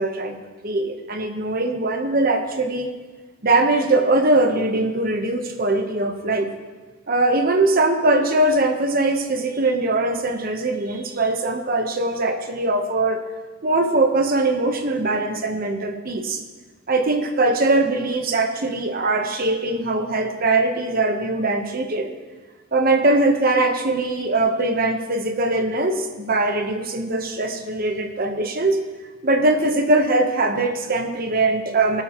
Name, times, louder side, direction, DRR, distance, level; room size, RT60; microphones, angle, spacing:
voice 1, 0.0-2.9 3.4-6.5 7.1-13.2 13.6-16.4 16.9-22.1 22.7-28.8 29.2-32.0, right 2 dB, 45° right, 5 dB, 1.1 m, -21 dB
18.5 x 9.0 x 3.1 m, 1.3 s
head